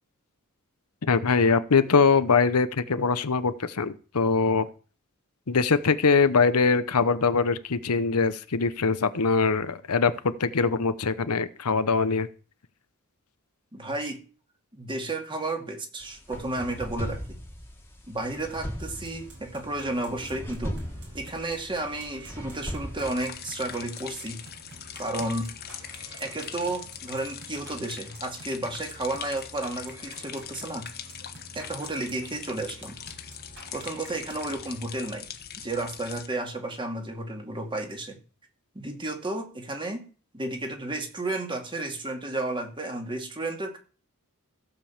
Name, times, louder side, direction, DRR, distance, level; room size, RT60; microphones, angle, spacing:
voice 1, 1.1-4.7 5.5-12.3, left 4 dB, 80° left, 13 dB, 0.9 m, -23 dB
voice 2, 13.7-14.2 14.7-17.4 18.1-20.8 21.1-24.4 24.9-25.5 26.2-30.9 31.5-33.0 33.7-35.3 35.6-38.2 38.7-40.0 40.3-43.8, right 2 dB, 20° right, 4 dB, 2.2 m, -32 dB
sound 1, 16.0-23.4, equal, 10° left, 2.0 m, -38 dB
sound 2, 18.8-35.1, right 2 dB, 55° right, 5.1 m, -49 dB
sound 3, 23.0-36.3, left 9 dB, 45° left, 1.2 m, -42 dB
15.5 x 5.3 x 7.3 m, 0.38 s
head